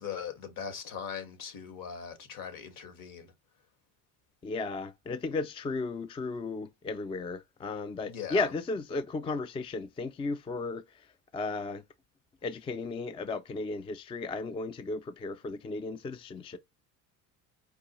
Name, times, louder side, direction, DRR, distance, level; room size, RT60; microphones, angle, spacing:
voice 1, 0.0-3.3 8.1-8.4, left 7 dB, 55° left, 1.6 m, -40 dB
voice 2, 4.4-10.8 11.3-11.8 12.4-16.6, left 3 dB, 15° left, 0.3 m, -34 dB
4.7 x 2.3 x 2.9 m
supercardioid pair, 85°, 39 cm